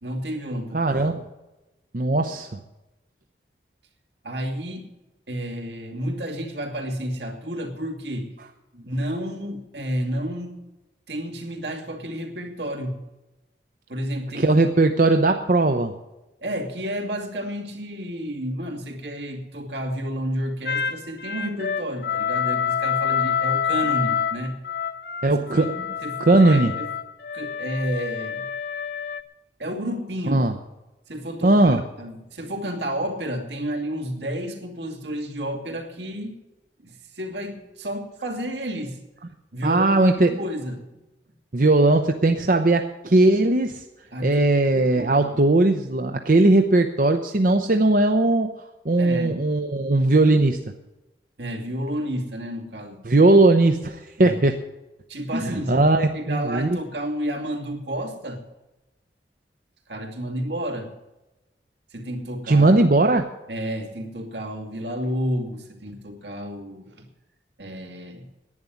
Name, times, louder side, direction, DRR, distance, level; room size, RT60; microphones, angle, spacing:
voice 1, 0.0-1.1 4.2-4.9 5.3-8.3 8.8-10.6 11.1-13.0 13.9-14.6 16.4-24.6 25.5-25.7 26.0-26.9 27.3-28.5 29.6-30.4 31.1-36.4 36.8-39.0 39.5-40.8 44.1-44.5 44.7-45.3 49.0-49.4 51.4-53.0 54.2-54.4 55.1-58.5 59.9-61.0 61.9-62.8 63.5-67.1 67.6-68.3, equal, 80° right, 2 dB, 2.7 m, -31 dB
voice 2, 0.7-1.2 1.9-2.5 14.3-15.9 25.2-25.8 26.2-26.7 30.3-30.5 31.4-31.8 39.6-40.4 41.5-43.8 44.2-48.5 48.8-50.6 53.0-54.6 55.3-56.8 62.5-63.2, right 2 dB, 50° right, 6 dB, 0.7 m, -19 dB
sound 1, 20.7-29.2, left 7 dB, 60° left, 0.7 m, -27 dB
11.0 x 9.3 x 9.9 m, 1.0 s
head